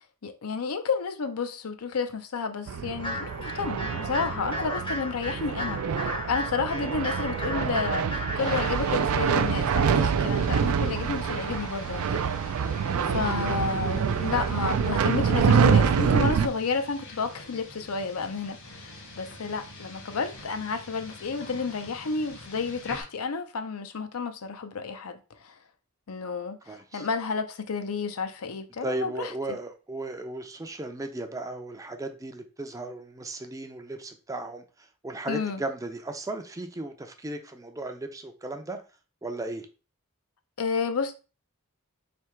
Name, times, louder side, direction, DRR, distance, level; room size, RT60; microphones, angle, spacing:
voice 1, 0.2-12.2 13.0-18.6 19.2-25.5 26.1-29.3 35.3-35.6 40.6-41.2, left 5 dB, 80° left, 0.6 m, -31 dB
sound 1, 2.7-16.5, right 6 dB, 75° right, 0.4 m, -26 dB
sound 2, 3.0-8.8, equal, 25° left, 0.6 m, -35 dB
sound 3, 8.4-23.0, left 2 dB, 60° left, 1.3 m, -45 dB
voice 2, 26.7-27.1 28.8-38.8 39.2-39.7, right 2 dB, 15° right, 0.4 m, -36 dB
3.4 x 2.8 x 4.4 m
head